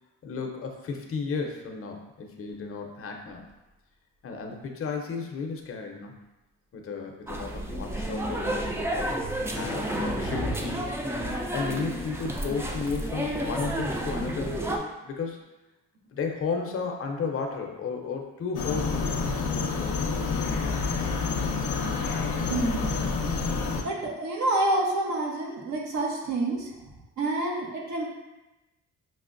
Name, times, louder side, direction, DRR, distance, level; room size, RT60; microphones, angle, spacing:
voice 1, 0.2-3.5 4.2-6.1 6.7-8.8 9.5-10.9 11.5-14.6 15.0-15.4 16.1-19.3, left 5 dB, 45° left, 3 dB, 0.6 m, -33 dB
sound 1, 2.5-2.8 3.0-4.7 5.5-6.0 6.2-6.5 7.3-8.2 9.6-13.2 13.5-14.5, left 2 dB, 40° right, 0.8 m, -45 dB
sound 2, 7.3-14.8, right 1 dB, 10° right, 0.4 m, -31 dB
sound 3, 18.5-23.8, left 4 dB, 90° left, 0.6 m, -28 dB
voice 2, 22.5-23.0 23.8-26.7 27.2-28.0, right 2 dB, 70° right, -2 dB, 0.9 m, -28 dB
5.9 x 2.1 x 2.5 m, 1.0 s
cardioid pair, 90°, 30 cm